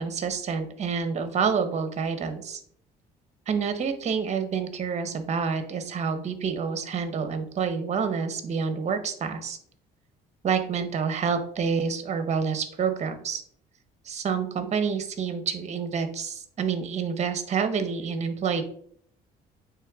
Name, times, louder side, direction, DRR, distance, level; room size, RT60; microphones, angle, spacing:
voice 1, 0.0-2.6 3.5-9.6 10.4-13.4 14.0-18.6, right 6 dB, 40° right, 9 dB, 0.9 m, -28 dB
8.3 x 3.4 x 3.6 m, 0.62 s
cardioid pair, 110°, 17 cm